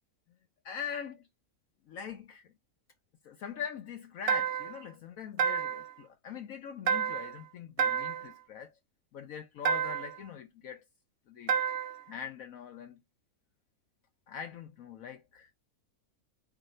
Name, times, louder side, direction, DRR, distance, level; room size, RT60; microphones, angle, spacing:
voice 1, 0.6-1.3 1.9-2.5 3.2-8.7 9.1-10.8 11.3-11.6 12.1-13.0 14.3-15.5, left 8 dB, 70° left, 1.0 m, -42 dB
sound 1, 4.3-4.8 5.4-5.9 6.9-7.4 7.8-8.3 9.6-10.2 11.5-12.0, right 7 dB, 80° right, 0.5 m, -30 dB
4.8 x 2.6 x 4.2 m
omnidirectional pair, 1.6 m